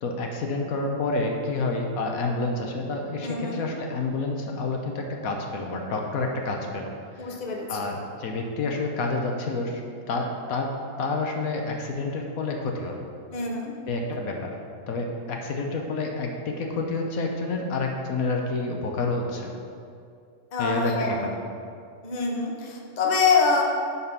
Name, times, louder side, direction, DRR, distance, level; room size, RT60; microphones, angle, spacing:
voice 1, 0.0-6.9 7.1-7.3 7.7-10.7 11.0-13.1 13.9-14.5 14.9-19.5 20.6-21.3, left 3 dB, 75° left, 2 dB, 1.3 m, -29 dB
voice 2, 3.2-3.6 7.2-7.8 13.3-13.7 20.5-21.3 22.0-23.6, left 4 dB, 35° left, -1 dB, 1.0 m, -25 dB
9.9 x 4.1 x 5.6 m, 2.4 s
omnidirectional pair, 1.5 m